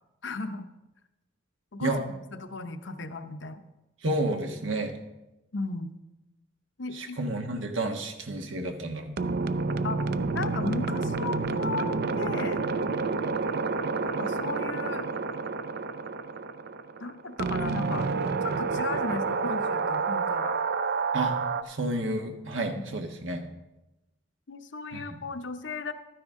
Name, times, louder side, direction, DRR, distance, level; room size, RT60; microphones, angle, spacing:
voice 1, 0.2-0.7 1.7-1.9 2.3-3.6 5.5-5.9 6.8-7.2 7.9-8.0 9.8-10.0 10.3-11.9 12.2-12.6 14.0-15.1 17.0-18.1 18.6-20.5 22.7-22.8 24.5-25.9, left 3 dB, 70° left, 8 dB, 0.8 m, -35 dB
voice 2, 4.0-5.0 6.9-9.1 21.1-21.4 21.6-23.4 24.9-25.2, right 2 dB, 80° right, 5 dB, 1.4 m, -30 dB
sound 1, 9.2-21.6, right 4 dB, 55° right, 0.5 m, -29 dB
12.5 x 10.0 x 3.7 m, 0.99 s
head